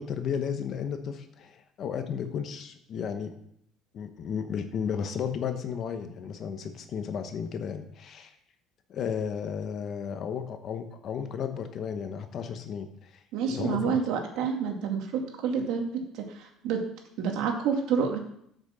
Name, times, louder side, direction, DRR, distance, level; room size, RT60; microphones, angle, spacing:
voice 1, 0.0-3.3 3.9-8.3 8.9-13.1 13.5-14.0, left 7 dB, 45° left, 8 dB, 1.1 m, -33 dB
voice 2, 13.3-16.8 17.2-18.2, right 6 dB, 70° right, 3 dB, 2.2 m, -29 dB
8.7 x 6.1 x 6.9 m, 0.71 s
cardioid pair, 145°, 0 cm